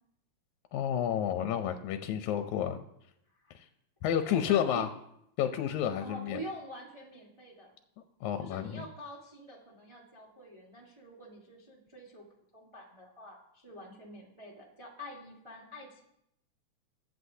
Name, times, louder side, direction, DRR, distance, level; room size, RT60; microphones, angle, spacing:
voice 1, 0.7-2.8 4.0-4.9 5.4-6.4 8.2-8.8, left 9 dB, 80° left, 8 dB, 2.0 m, -30 dB
voice 2, 4.1-4.9 6.0-7.7 8.4-12.3 12.5-16.0, equal, 35° right, -2 dB, 0.4 m, -46 dB
22.5 x 8.0 x 2.7 m, 0.78 s
omnidirectional pair, 3.4 m